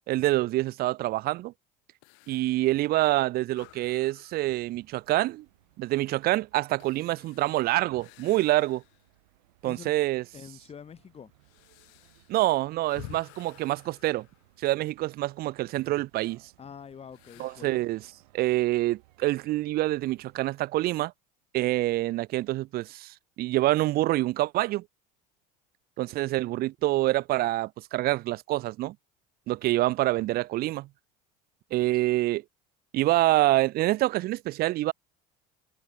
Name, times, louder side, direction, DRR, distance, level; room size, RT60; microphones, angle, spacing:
voice 1, 0.1-1.5 2.3-5.4 5.8-8.8 9.6-10.2 12.3-14.3 14.6-16.4 17.4-18.0 18.3-21.1 21.5-24.8 26.0-29.0 29.5-30.9 31.7-32.4 32.9-34.9, right 17 dB, 50° right, 0.7 m, -26 dB
sound 1, 2.0-9.2 9.7-9.8 10.5-15.1 17.1-17.9, left 36 dB, 70° left, 2.0 m, -53 dB
sound 2, 4.3-20.4, right 21 dB, 85° right, 7.7 m, -63 dB
voice 2, 9.6-10.0 10.3-11.3 16.6-17.8, left 7 dB, 30° left, 4.2 m, -46 dB
supercardioid pair, 105°, 20 cm